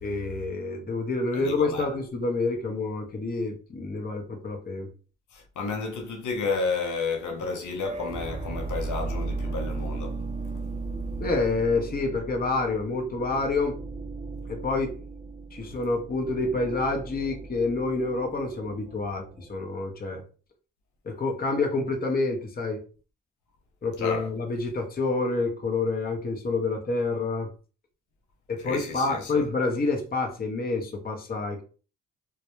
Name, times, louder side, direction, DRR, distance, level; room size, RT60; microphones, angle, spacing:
voice 1, 0.0-4.9 11.2-13.8 14.5-15.0 15.5-20.2 21.0-22.8 23.8-27.5 28.5-31.6, left 3 dB, 30° left, 0.7 m, -28 dB
voice 2, 1.3-1.9 5.3-10.2 24.0-24.3 28.6-29.4, left 4 dB, 65° left, 0.7 m, -31 dB
sound 1, 7.8-19.7, right 3 dB, 20° right, 0.4 m, -36 dB
2.2 x 2.0 x 3.0 m
supercardioid pair, 55°, 32 cm